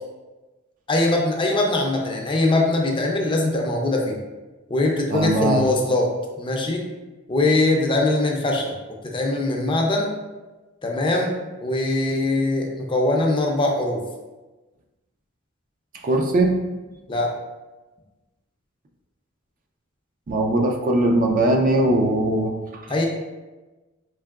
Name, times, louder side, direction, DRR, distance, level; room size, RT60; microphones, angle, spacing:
voice 1, 0.9-4.2 4.7-6.1 6.4-6.8 7.3-8.7 9.0-10.1 10.8-11.3 11.6-14.0 17.1-17.3 22.9-23.1, left 2 dB, 25° left, 0 dB, 0.4 m, -21 dB
voice 2, 5.1-5.6 16.0-16.6 20.3-22.6 22.8-22.9, right 1 dB, 40° right, 2 dB, 0.4 m, -20 dB
4.6 x 2.8 x 2.3 m, 1.2 s
head